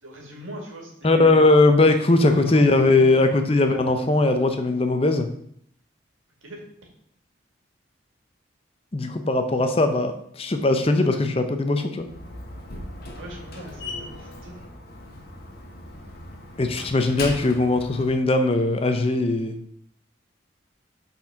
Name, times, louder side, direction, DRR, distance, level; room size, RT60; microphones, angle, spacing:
voice 1, 0.0-1.5 2.2-3.5 6.4-6.6 13.1-14.6, right 1 dB, 90° right, 0 dB, 2.2 m, -39 dB
voice 2, 1.0-5.3 8.9-12.1 16.6-19.6, left 2 dB, 30° left, 7 dB, 0.6 m, -20 dB
Slam, 12.0-18.2, left 2 dB, 50° left, 1.0 m, -38 dB
6.0 x 4.4 x 5.6 m, 0.67 s
head